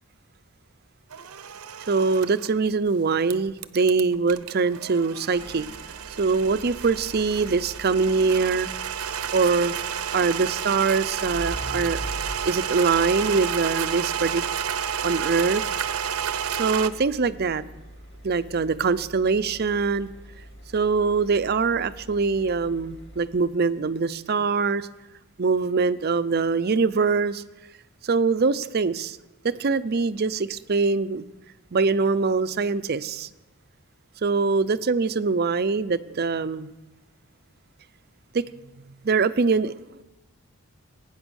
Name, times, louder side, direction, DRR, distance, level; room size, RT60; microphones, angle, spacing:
sound 1, 1.1-2.5 3.3-16.9, right 8 dB, 85° right, 0.7 m, -31 dB
voice 1, 1.9-5.7 6.2-8.7 9.3-9.8 10.1-12.0 12.5-14.4 15.0-15.6 16.6-17.6 18.2-20.1 20.7-24.9 25.4-27.4 28.0-29.2 29.4-31.2 31.7-33.3 34.2-36.7 38.3-38.4 39.0-39.7, right 4 dB, 45° right, 14 dB, 0.5 m, -23 dB
sound 2, 5.3-23.6, equal, 55° left, 2.5 m, -43 dB
21.5 x 9.6 x 6.3 m, 1.1 s
head